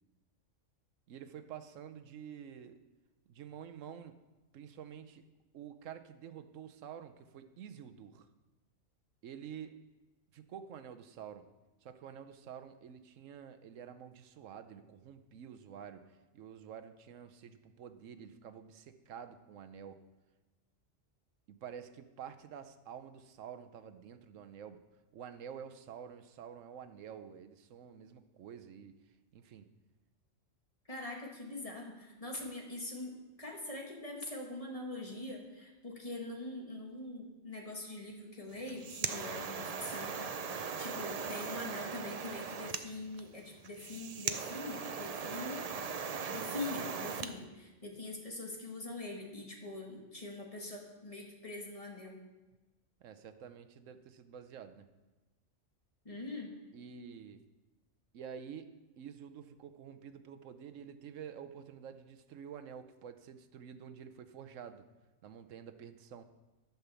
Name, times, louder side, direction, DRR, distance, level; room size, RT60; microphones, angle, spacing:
voice 1, 1.1-2.8 3.3-4.2 4.5-5.2 5.5-8.3 9.2-9.8 10.3-11.4 11.8-20.0 21.5-24.8 25.1-29.0 29.3-29.7 46.3-46.9 53.0-54.9 56.7-57.4 58.1-58.7 59.0-64.8 65.2-66.2, right 8 dB, 80° right, 9 dB, 1.1 m, -49 dB
voice 2, 30.9-33.1 33.4-45.6 46.3-52.2 56.0-56.5, left 2 dB, 30° left, 0 dB, 1.7 m, -43 dB
sound 1, 38.5-47.3, right 5 dB, 45° right, 0.5 m, -39 dB
12.0 x 5.7 x 6.9 m, 1.2 s
omnidirectional pair, 1.3 m